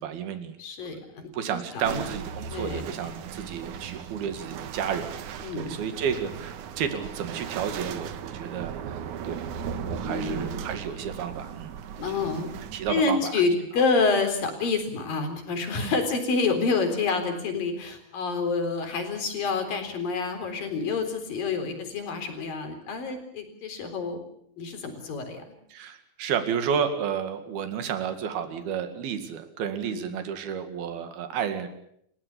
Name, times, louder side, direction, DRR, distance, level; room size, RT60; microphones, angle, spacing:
voice 1, 0.0-0.6 1.3-9.0 9.2-11.7 12.1-12.3 12.7-13.3 15.8-15.9 25.7-31.7, right 7 dB, 80° right, 8 dB, 4.0 m, -31 dB
voice 2, 0.6-2.1 2.5-3.3 5.4-5.8 10.0-10.6 12.0-12.5 12.9-24.2 24.6-25.4 29.8-30.1, left 4 dB, 65° left, 6 dB, 5.6 m, -28 dB
sound 1, 1.8-13.0, right 8 dB, 65° right, 2.4 m, -37 dB
30.0 x 16.5 x 8.4 m, 0.71 s
omnidirectional pair, 4.3 m